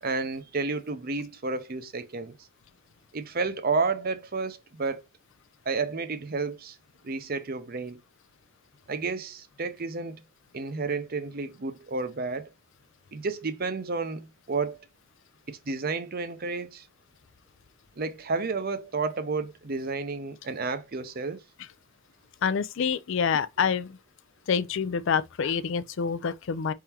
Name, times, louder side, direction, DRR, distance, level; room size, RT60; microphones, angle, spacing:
voice 1, 0.0-2.3 3.1-5.0 5.7-6.8 7.0-8.0 8.9-10.2 10.5-12.5 13.1-14.8 15.5-16.8 18.0-21.4, right 4 dB, 45° right, 0.6 m, -31 dB
voice 2, 22.4-24.0 24.5-26.7, left 6 dB, 60° left, 0.4 m, -27 dB
4.4 x 3.7 x 2.9 m
head